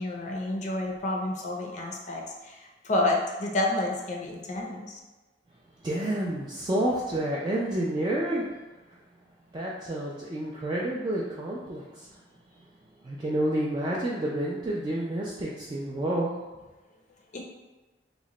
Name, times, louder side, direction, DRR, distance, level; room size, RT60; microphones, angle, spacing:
voice 1, 0.0-5.0 17.3-17.4, left 2 dB, 40° left, 0 dB, 0.5 m, -29 dB
voice 2, 5.8-8.4 9.5-12.1 13.0-16.3, right 1 dB, 25° right, -6 dB, 0.3 m, -29 dB
3.0 x 2.1 x 3.7 m, 1.2 s
head